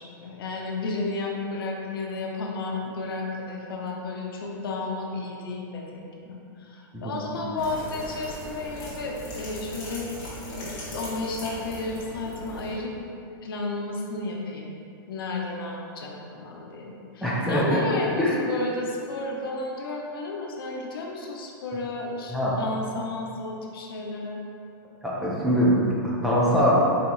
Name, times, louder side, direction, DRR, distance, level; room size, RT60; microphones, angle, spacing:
voice 1, 0.0-10.1 10.6-12.9 13.4-14.7 15.1-24.4, left 2 dB, 75° left, -1 dB, 0.7 m, -32 dB
voice 2, 6.9-7.4 17.2-17.8 18.2-18.3 22.3-22.6 25.0-26.9, equal, ahead, -8 dB, 0.5 m, -23 dB
sound 1, 7.6-12.7, equal, 30° left, 1.3 m, -39 dB
4.2 x 2.8 x 3.9 m, 2.7 s
supercardioid pair, 155°, 12 cm